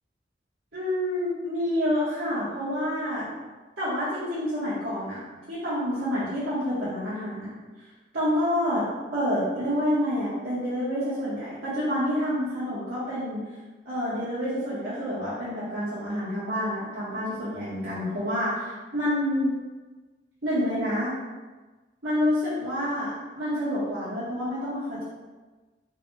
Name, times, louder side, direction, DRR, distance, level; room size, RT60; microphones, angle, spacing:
voice 1, 0.7-3.3 3.8-7.5 8.1-8.8 9.1-13.4 13.8-19.5 20.4-21.1 22.0-25.0, equal, 75° right, -13 dB, 1.5 m, -28 dB
5.7 x 3.4 x 2.3 m, 1.3 s
head